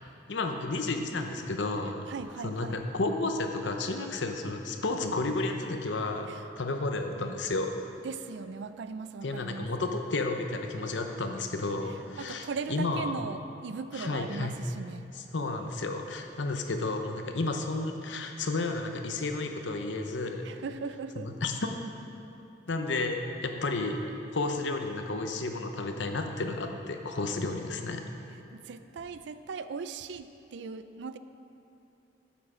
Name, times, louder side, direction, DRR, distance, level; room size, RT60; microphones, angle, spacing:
voice 1, 0.3-2.1 2.4-6.3 6.6-7.7 9.2-13.1 13.9-14.5 15.3-20.4 21.2-21.7 22.7-24.0 24.3-28.1, left 2 dB, 70° left, 5 dB, 0.8 m, -32 dB
voice 2, 2.1-2.8 6.3-6.5 8.0-9.7 11.9-15.1 20.4-21.3 28.5-31.2, right 5 dB, 65° right, 11 dB, 0.4 m, -39 dB
10.5 x 7.4 x 5.0 m, 2.7 s
head